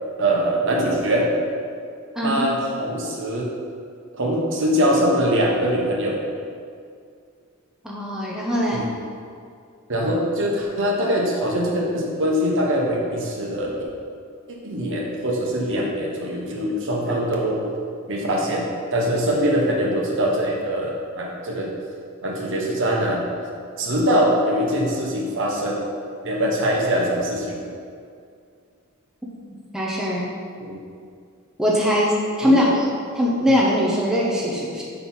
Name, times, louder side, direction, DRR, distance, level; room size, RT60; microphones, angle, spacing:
voice 1, 0.2-1.3 2.2-3.5 4.1-6.2 8.7-8.8 9.9-13.7 14.6-17.6 18.1-21.7 22.2-23.2 23.8-25.8 26.2-27.6 30.6-30.8 32.4-32.6, equal, 60° right, -2 dB, 1.1 m, -22 dB
voice 2, 2.2-2.5 7.8-8.9 29.7-30.3 31.6-32.8 33.2-34.8, equal, 5° right, -5 dB, 0.7 m, -21 dB
5.4 x 4.6 x 5.5 m, 2.3 s
head